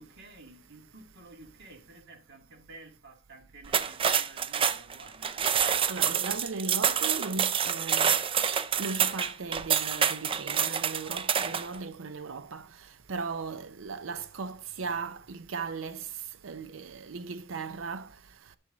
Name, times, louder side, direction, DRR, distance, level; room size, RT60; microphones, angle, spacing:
voice 1, 0.0-5.3, right 2 dB, 60° right, 2.3 m, -51 dB
sound 1, 3.6-11.7, right 8 dB, 25° right, 0.4 m, -27 dB
voice 2, 5.9-8.2 8.8-12.7 13.1-16.1 16.4-18.1, right 4 dB, 85° right, 0.6 m, -37 dB
10.5 x 6.2 x 3.9 m
head